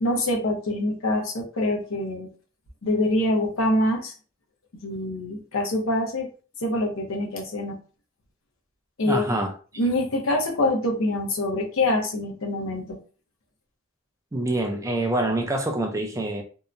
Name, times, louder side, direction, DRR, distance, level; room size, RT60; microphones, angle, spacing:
voice 1, 0.0-2.3 2.8-4.1 4.8-6.3 6.6-7.8 9.0-9.2 9.8-13.0, left 1 dB, 80° left, 0.8 m, -25 dB
voice 2, 9.0-9.5 14.3-16.4, right 1 dB, 15° right, 0.4 m, -26 dB
2.8 x 2.1 x 2.5 m
head